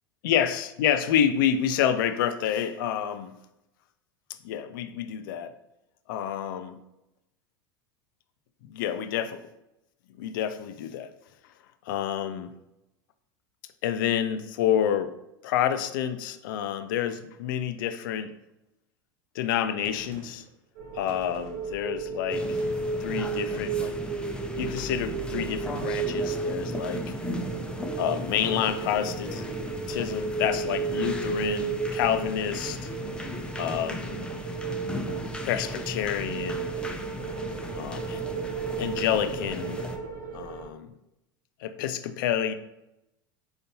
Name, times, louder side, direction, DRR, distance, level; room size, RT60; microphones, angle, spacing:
voice 1, 0.2-3.4 4.4-5.5 6.1-6.8 8.7-9.5 10.2-11.1 11.9-12.5 13.8-15.1 15.4-18.3 19.3-20.4 20.9-22.6 23.0-24.0 24.6-27.0 28.0-29.5 29.9-32.9 33.6-34.3 35.4-36.7 37.7-38.2 38.8-39.9 40.3-40.9 41.6-42.5, left 9 dB, 70° left, 0.4 m, -28 dB
Gunshot gunfire, 19.8-20.5 21.1-21.8 22.6-23.0 23.5-24.0 24.8-25.3 25.8-26.2, right 3 dB, 55° right, 0.9 m, -48 dB
sound 1, 20.8-40.7, right 5 dB, 75° right, 0.6 m, -34 dB
sound 2, 22.3-40.0, left 1 dB, 10° left, 0.5 m, -36 dB
4.2 x 3.9 x 2.7 m
hypercardioid pair, 85°, 11 cm